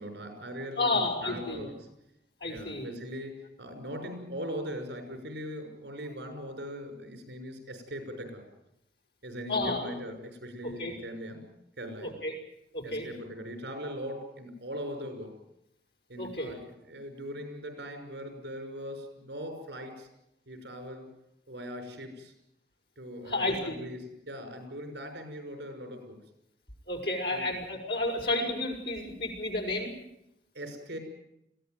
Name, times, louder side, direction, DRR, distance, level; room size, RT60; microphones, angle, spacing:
voice 1, 0.0-1.8 2.5-8.4 9.2-11.4 11.8-12.1 12.8-15.4 16.1-20.1 20.5-21.1 21.5-22.3 23.0-26.2 27.3-27.5 30.5-31.0, equal, 75° right, 5 dB, 6.0 m, -40 dB
voice 2, 0.8-1.7 2.4-2.9 9.5-9.9 10.6-10.9 12.0-12.3 12.7-13.1 16.2-16.5 23.2-23.7 26.9-29.9, left 2 dB, 75° left, 0 dB, 5.8 m, -31 dB
22.0 x 16.5 x 9.4 m, 0.82 s
head